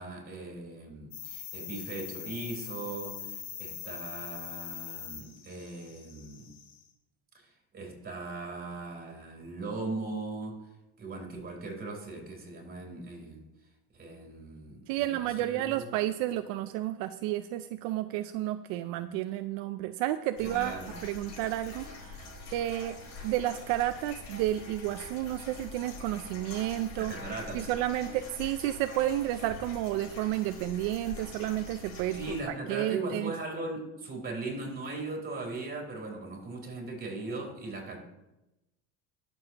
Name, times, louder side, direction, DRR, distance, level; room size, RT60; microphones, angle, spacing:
voice 1, 0.0-6.5 7.3-10.6 11.0-13.4 13.9-15.8 20.4-21.0 27.0-27.7 32.1-38.0, right 3 dB, 30° right, 0 dB, 3.5 m, -39 dB
sound 1, 1.1-6.8, left 9 dB, 85° left, 2.1 m, -42 dB
voice 2, 14.9-20.7 21.0-23.0 23.2-27.1 27.5-32.3 32.7-33.3, right 14 dB, 75° right, 9 dB, 0.5 m, -31 dB
sound 2, 20.4-32.4, left 2 dB, 55° left, 4.0 m, -45 dB
20.5 x 7.1 x 2.9 m, 0.99 s
cardioid pair, 140°, 34 cm